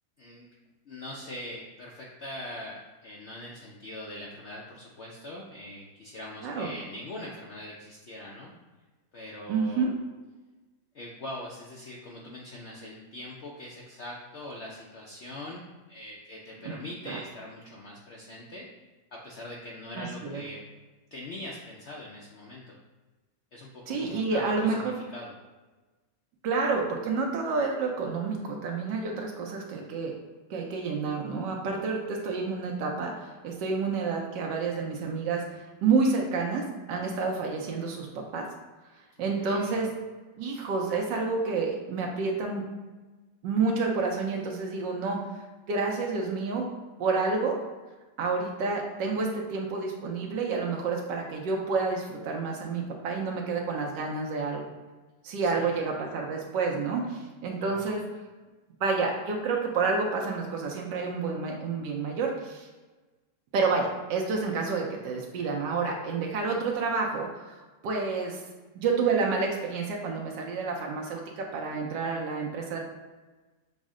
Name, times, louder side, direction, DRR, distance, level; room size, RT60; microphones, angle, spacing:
voice 1, 0.2-0.5 0.9-8.5 9.1-9.8 10.9-15.6 15.9-18.7 19.1-20.6 21.1-22.8 23.5-25.3 39.2-39.7 55.4-55.8 57.6-57.9, left 1 dB, 90° left, -3 dB, 0.5 m, -42 dB
voice 2, 9.5-9.9 16.6-16.7 17.1-17.2 19.9-20.4 23.9-25.0 26.4-30.1 30.5-38.1 38.3-38.4 39.2-39.9 40.4-42.6 43.4-46.7 47.0-47.6 48.2-54.7 55.2-58.0 58.8-62.7 63.5-68.4 68.7-72.8, right 4 dB, 85° right, 0 dB, 1.3 m, -29 dB
6.2 x 2.1 x 3.6 m, 1.2 s
omnidirectional pair, 1.9 m